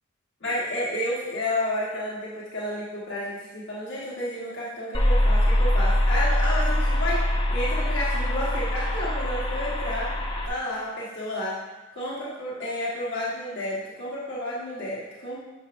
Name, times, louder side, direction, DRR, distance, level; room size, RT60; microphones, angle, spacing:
voice 1, 0.4-10.1 10.4-11.6 11.9-15.4, left 1 dB, 55° left, -7 dB, 1.3 m, -31 dB
sound 1, 4.9-10.5, left 1 dB, 25° left, 0.7 m, -23 dB
9.3 x 5.7 x 2.5 m, 1.2 s
head